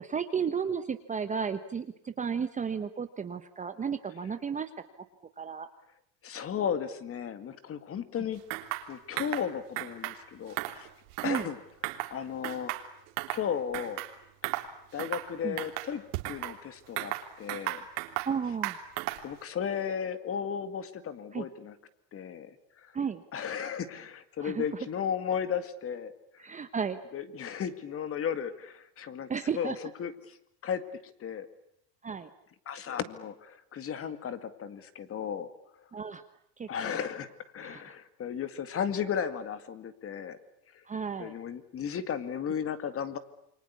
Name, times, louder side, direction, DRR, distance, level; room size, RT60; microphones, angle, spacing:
voice 1, 0.1-4.7 5.4-5.7 11.2-11.5 15.4-15.6 18.3-18.8 21.3-21.5 22.9-23.2 24.4-24.6 26.4-27.0 29.3-29.8 32.0-32.3 35.9-36.2 36.6-37.0 37.6-37.9 40.9-41.3, right 6 dB, 15° right, 9 dB, 1.0 m, -33 dB
voice 2, 6.2-8.4 8.9-10.9 11.2-11.6 12.0-12.7 13.3-14.0 14.9-17.9 19.2-21.7 22.1-22.5 23.3-26.1 27.1-30.4 30.6-30.8 31.2-31.5 32.7-35.5 36.7-37.3 37.5-40.4 41.2-43.2, left 8 dB, 25° left, 12 dB, 2.1 m, -35 dB
sound 1, 8.5-8.9 9.2-9.5 9.8-10.2 10.5-11.5 11.8-12.1 12.4-13.4 13.7-14.1 14.4-14.7 15.0-15.3 15.6-16.6 17.0-18.3 18.6-19.3, right 18 dB, 65° right, 3.4 m, -35 dB
28.5 x 25.0 x 8.4 m, 0.76 s
supercardioid pair, 155°, 49 cm